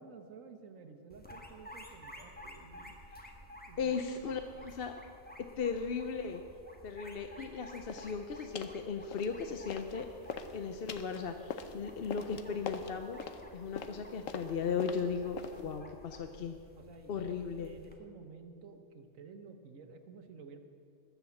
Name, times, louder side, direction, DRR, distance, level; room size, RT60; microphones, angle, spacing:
voice 1, 0.0-2.9 3.7-4.4 16.8-20.6, right 5 dB, 90° right, 7 dB, 1.5 m, -53 dB
sound 1, 1.1-17.9, left 1 dB, 5° left, 1.3 m, -53 dB
voice 2, 3.8-4.9 5.6-6.4 6.8-10.1 10.5-13.3 13.5-16.5 17.1-17.7, left 6 dB, 55° left, 6 dB, 0.8 m, -37 dB
sound 2, 7.9-8.1 8.6-8.8 9.1-10.0 10.2-15.8, left 6 dB, 80° left, 1.2 m, -43 dB
21.0 x 7.1 x 7.1 m, 2.5 s
omnidirectional pair, 1.3 m